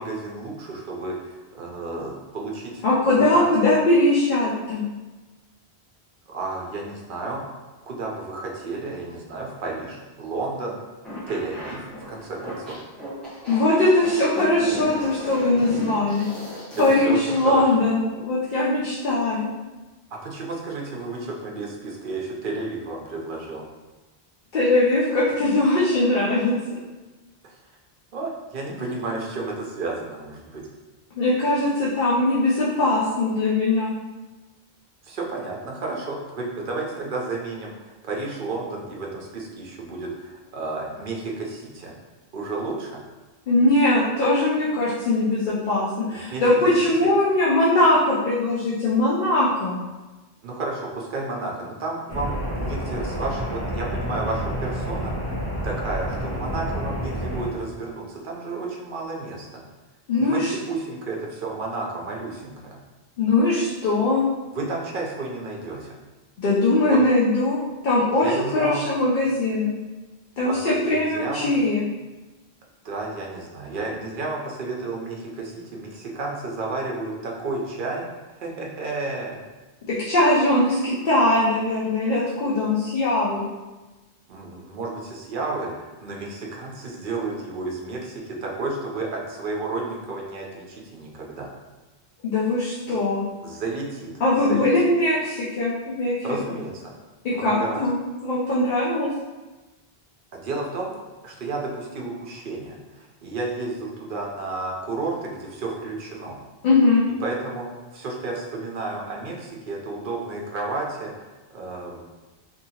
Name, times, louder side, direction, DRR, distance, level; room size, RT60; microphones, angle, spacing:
voice 1, 0.0-2.8 3.3-3.5 6.3-7.4 7.8-10.8 11.3-12.8 16.7-17.6 20.2-23.6 27.4-27.6 28.1-30.7 35.0-41.9 42.3-43.0 46.1-46.7 50.4-55.1 55.6-59.6 60.2-62.8 64.5-66.0 66.9-67.0 68.2-68.9 70.4-71.5 72.8-78.1 78.4-79.4 84.3-91.5 92.9-93.0 93.4-94.7 96.2-96.9 97.3-97.8 100.3-100.9 101.2-106.4 107.2-107.7 107.9-112.0, right 3 dB, 60° right, -2 dB, 0.7 m, -32 dB
voice 2, 2.8-4.8 13.5-16.3 16.8-19.5 24.5-26.8 31.2-33.9 43.5-49.8 60.1-60.5 63.2-64.3 66.4-69.7 70.4-71.8 79.9-83.4 92.2-93.2 94.2-96.4 97.2-97.9 98.2-99.1 106.6-107.0, left 2 dB, 55° left, -7 dB, 0.7 m, -21 dB
sound 1, 11.0-17.6, equal, ahead, 0.8 m, -35 dB
sound 2, 52.1-57.5, equal, 30° left, 1.1 m, -29 dB
2.7 x 2.7 x 2.8 m, 1.2 s
omnidirectional pair, 1.0 m